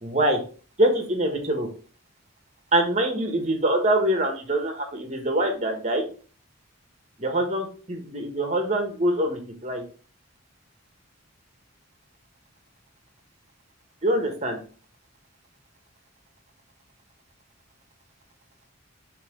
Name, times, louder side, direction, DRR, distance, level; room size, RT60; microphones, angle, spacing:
voice 1, 0.0-0.4 0.8-1.7 2.7-6.0 7.2-9.8 14.0-14.6, right 1 dB, 35° right, 4 dB, 1.4 m, -24 dB
5.9 x 3.5 x 4.9 m, 0.39 s
head